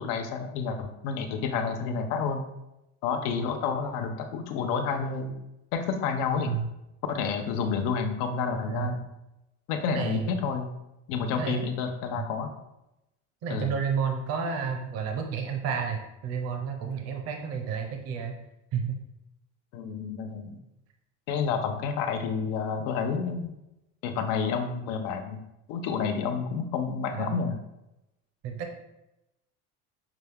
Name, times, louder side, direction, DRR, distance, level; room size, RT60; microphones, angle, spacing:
voice 1, 0.0-2.4 3.0-5.3 5.7-6.5 7.1-9.0 9.7-10.7 11.1-12.5 13.5-13.7 19.7-20.6 21.3-23.5 24.0-25.4 25.7-27.6, left 5 dB, 80° left, 6 dB, 0.7 m, -29 dB
voice 2, 9.9-10.4 11.4-11.6 12.2-12.3 13.4-18.3 18.7-19.0 27.1-27.5 28.4-28.7, right 6 dB, 50° right, 4 dB, 0.6 m, -31 dB
5.9 x 2.2 x 3.4 m, 0.92 s
cardioid pair, 150°, 33 cm